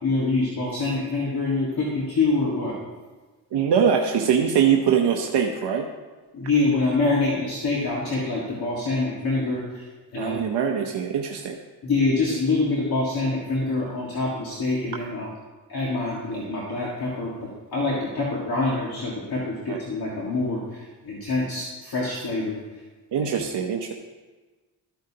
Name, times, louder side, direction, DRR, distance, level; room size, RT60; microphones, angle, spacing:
voice 1, 0.0-2.8 6.3-9.9 10.1-10.4 11.8-15.3 15.7-22.6, left 3 dB, 60° left, -5 dB, 1.8 m, -25 dB
voice 2, 3.5-5.9 10.2-11.6 19.7-19.8 23.1-23.9, right 7 dB, 75° right, 2 dB, 0.8 m, -22 dB
13.5 x 9.1 x 2.8 m, 1.3 s
wide cardioid pair, 145°, 42 cm